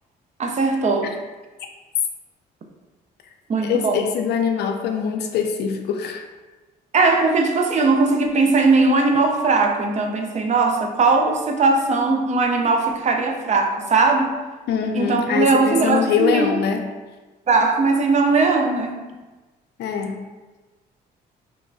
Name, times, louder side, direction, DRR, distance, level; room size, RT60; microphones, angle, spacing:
voice 1, 0.4-1.1 3.5-4.1 6.9-14.3 14.9-16.6 17.5-19.0, right 3 dB, 40° right, 3 dB, 0.4 m, -19 dB
voice 2, 3.6-6.2 14.7-16.8 19.8-20.1, left 7 dB, 65° left, 4 dB, 0.4 m, -23 dB
2.9 x 2.2 x 2.5 m, 1.2 s
supercardioid pair, 70°, 19 cm